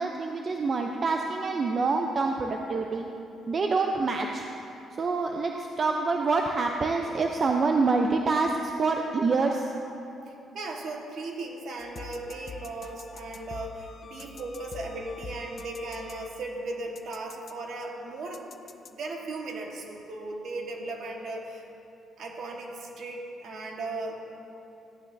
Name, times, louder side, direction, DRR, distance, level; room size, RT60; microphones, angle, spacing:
voice 1, 0.0-3.0 3.5-4.4 5.0-9.7, right 4 dB, 45° right, 3 dB, 0.6 m, -26 dB
voice 2, 10.3-18.4 18.9-21.6 22.2-24.2, right 2 dB, 65° right, 1 dB, 1.4 m, -37 dB
sound 1, 11.8-16.6 16.9-17.5 18.3-18.9, left 5 dB, 50° left, 0.5 m, -45 dB
15.0 x 10.0 x 2.7 m, 2.9 s
cardioid pair, 90°, 0 cm